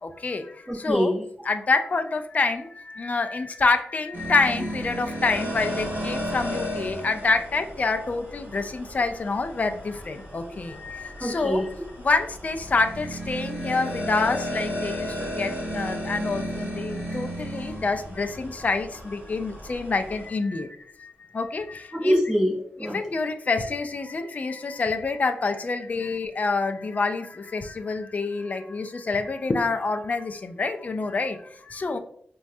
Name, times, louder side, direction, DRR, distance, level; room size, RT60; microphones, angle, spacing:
voice 1, 0.0-1.1 1.4-11.7 12.0-22.2 22.9-32.0, left 3 dB, 40° left, 7 dB, 0.3 m, -27 dB
voice 2, 0.7-1.2 11.2-11.6 21.9-23.0, equal, 10° right, -5 dB, 1.3 m, -24 dB
sound 1, 4.1-20.3, equal, 40° right, 1.4 m, -34 dB
4.0 x 2.3 x 2.6 m, 0.65 s
wide cardioid pair, 105°, 4 cm